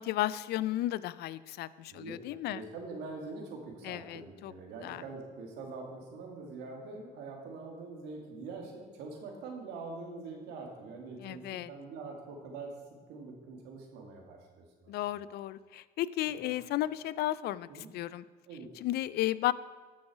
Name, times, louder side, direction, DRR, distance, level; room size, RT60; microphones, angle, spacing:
voice 1, 0.0-2.6 3.8-4.5 4.8-5.0 11.2-11.7 14.9-18.2 18.8-19.5, left 14 dB, 70° left, 18 dB, 0.4 m, -34 dB
voice 2, 1.9-2.2 2.5-11.4 11.7-12.7 13.1-14.9 16.4-16.5 17.7-17.9 18.5-18.7, right 3 dB, 90° right, 1 dB, 2.2 m, -44 dB
13.5 x 6.3 x 4.9 m, 1.4 s
cardioid pair, 110°, 17 cm